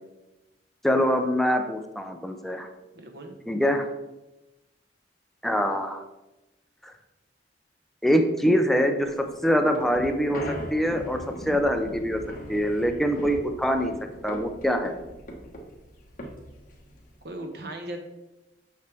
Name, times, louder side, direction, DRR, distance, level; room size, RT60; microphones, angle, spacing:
voice 1, 0.8-2.7 3.5-3.9 5.4-6.0 6.8-6.9 8.0-9.1 9.4-11.2 11.5-12.2 12.5-13.9 14.2-15.0, equal, ahead, 5 dB, 0.5 m, -24 dB
voice 2, 2.9-3.3 17.2-18.0, right 1 dB, 65° right, 3 dB, 1.1 m, -37 dB
sound 1, 9.1-17.2, equal, 50° left, 1.2 m, -39 dB
6.7 x 6.4 x 3.4 m, 1.0 s
head